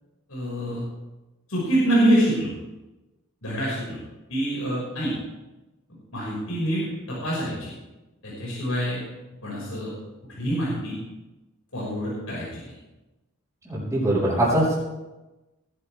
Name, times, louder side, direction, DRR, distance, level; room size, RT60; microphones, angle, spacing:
voice 1, 0.3-0.8 1.5-2.5 3.4-4.0 4.3-5.1 6.1-7.7 8.2-9.0 9.4-9.9 10.4-10.9 11.7-12.7, right 1 dB, 80° left, -6 dB, 6.2 m, -25 dB
voice 2, 13.6-14.7, right 1 dB, 10° right, -12 dB, 6.6 m, -22 dB
20.0 x 12.5 x 3.6 m, 1.1 s
head